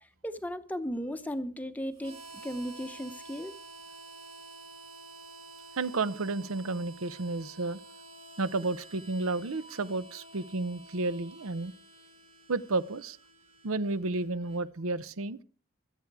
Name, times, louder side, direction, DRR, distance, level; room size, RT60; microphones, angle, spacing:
voice 1, 0.0-3.5, equal, 5° left, 0.7 m, -36 dB
Harmonica, 2.0-14.6, right 2 dB, 30° right, 3.5 m, -50 dB
voice 2, 5.8-7.8 8.4-11.7 12.5-13.2 13.6-15.4, right 3 dB, 75° right, 0.7 m, -32 dB
25.0 x 8.3 x 4.7 m
head